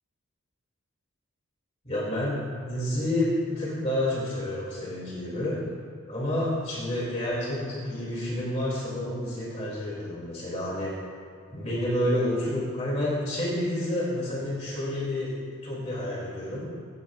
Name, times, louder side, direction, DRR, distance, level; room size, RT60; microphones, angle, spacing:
voice 1, 1.8-5.6 6.1-10.9 11.5-16.7, left 1 dB, 30° left, -6 dB, 3.0 m, -29 dB
23.0 x 11.0 x 2.6 m, 2.2 s
head